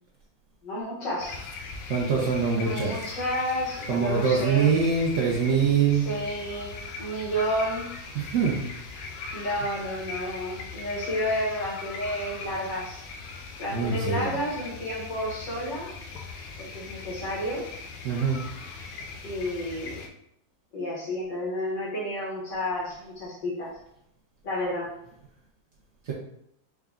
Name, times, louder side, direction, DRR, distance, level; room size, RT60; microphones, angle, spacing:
voice 1, 0.6-1.4 2.6-4.7 5.9-7.9 8.1-8.2 9.3-13.0 13.6-15.9 16.6-17.7 19.2-20.0 20.7-23.8 24.4-24.9, equal, 70° left, -5 dB, 2.0 m, -31 dB
sound 1, 1.2-20.1, left 4 dB, 85° left, 1.4 m, -40 dB
voice 2, 1.9-3.1 3.9-6.1 8.1-8.6 13.7-14.4 18.0-18.4 26.1-26.2, right 5 dB, 90° right, -3 dB, 0.6 m, -24 dB
4.8 x 2.2 x 3.6 m, 0.76 s
omnidirectional pair, 2.1 m